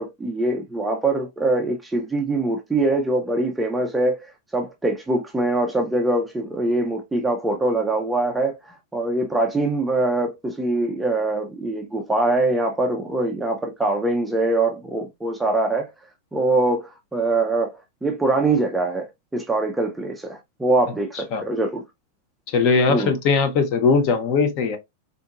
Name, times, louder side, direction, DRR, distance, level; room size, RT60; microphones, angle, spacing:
voice 1, 0.0-4.2 4.5-15.9 16.3-17.7 18.0-21.8 22.9-23.1, right 2 dB, 5° right, 0.4 m, -23 dB
voice 2, 22.5-24.8, left 4 dB, 35° left, 0.7 m, -19 dB
3.6 x 2.7 x 2.3 m
supercardioid pair, 165°, 0 cm